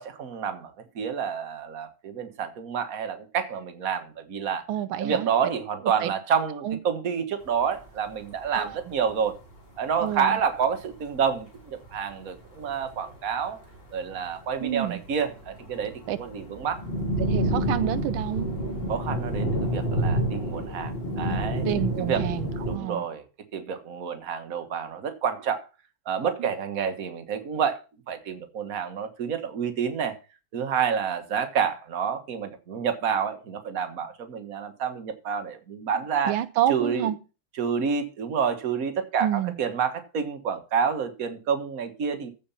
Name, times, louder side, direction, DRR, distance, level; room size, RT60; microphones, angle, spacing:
voice 1, 0.0-4.6 5.0-9.4 9.8-13.6 13.9-16.8 18.9-21.6 22.0-22.2 22.6-23.2 23.5-25.6 26.0-27.8 28.1-30.2 30.5-36.3 36.7-37.1 37.6-42.3, right 7 dB, 50° right, 1.7 m, -28 dB
voice 2, 4.7-5.3 6.0-6.1 6.6-6.8 8.5-8.8 10.0-10.4 14.6-15.0 16.1-16.2 17.2-18.5 21.6-23.0 26.4-26.5 36.2-37.2 39.2-39.6, right 12 dB, 85° right, 1.5 m, -28 dB
sound 1, 7.4-7.5 7.8-7.9 8.1-8.5 8.8-8.9 9.1-9.5 10.0-10.2 10.6-10.7 11.1-11.3 11.8-12.2 12.6-13.1 13.4-14.4 14.7-22.8, equal, 30° left, 3.7 m, -29 dB
15.0 x 5.1 x 5.6 m
omnidirectional pair, 2.2 m